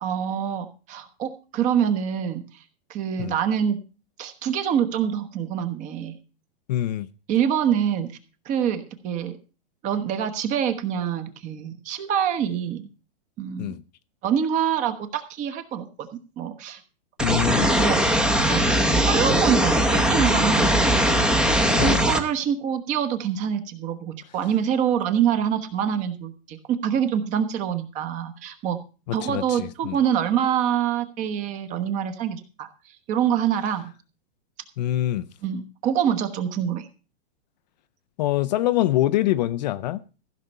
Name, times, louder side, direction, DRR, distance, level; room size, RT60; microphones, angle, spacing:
voice 1, 0.0-2.4 2.9-3.8 4.2-6.2 7.3-8.1 8.4-9.4 9.8-12.9 13.4-13.7 14.2-16.1 16.4-16.8 17.8-18.2 18.5-21.0 21.7-28.8 29.1-32.7 33.1-33.9 35.4-36.9, right 9 dB, 25° right, 1.2 m, -25 dB
voice 2, 6.7-7.1 13.6-13.8 17.2-17.7 21.8-22.0 29.1-30.0 34.8-35.3 38.2-40.0, left 13 dB, 45° left, 0.6 m, -24 dB
sound 1, 17.2-22.2, right 1 dB, ahead, 0.9 m, -20 dB
15.0 x 5.9 x 6.6 m
hypercardioid pair, 155°, 30 cm